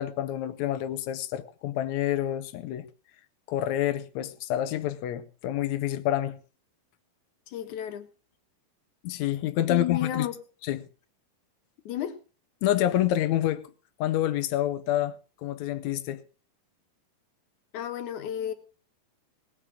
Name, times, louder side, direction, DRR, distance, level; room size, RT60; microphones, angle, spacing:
voice 1, 0.0-2.9 3.5-6.4 9.0-10.3 10.7-10.8 12.6-13.7 14.0-15.1 15.4-16.2, left 12 dB, 80° left, 1.6 m, -28 dB
voice 2, 7.5-8.1 9.7-10.4 11.9-12.2 17.7-18.5, left 10 dB, 65° left, 2.4 m, -32 dB
18.5 x 7.6 x 6.3 m
omnidirectional pair, 4.2 m